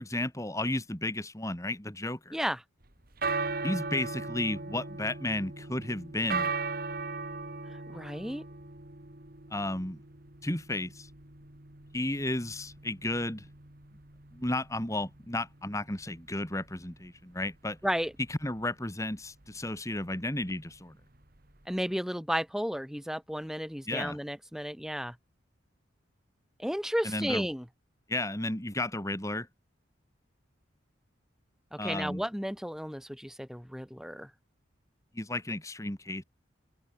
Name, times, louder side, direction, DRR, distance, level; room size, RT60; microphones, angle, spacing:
voice 1, 0.0-2.4 3.6-6.5 9.5-10.0 10.4-11.1 11.9-13.5 14.3-17.8 18.3-20.9 23.9-24.2 27.0-27.5 28.1-29.5 31.8-32.2 35.1-36.2, left 1 dB, 15° left, 2.7 m, -33 dB
voice 2, 2.3-2.6 7.9-8.4 17.8-18.1 21.7-25.2 26.6-27.6 31.7-34.3, equal, ahead, 3.8 m, -33 dB
sound 1, 2.8-21.9, right 4 dB, 50° right, 2.4 m, -39 dB
open air
head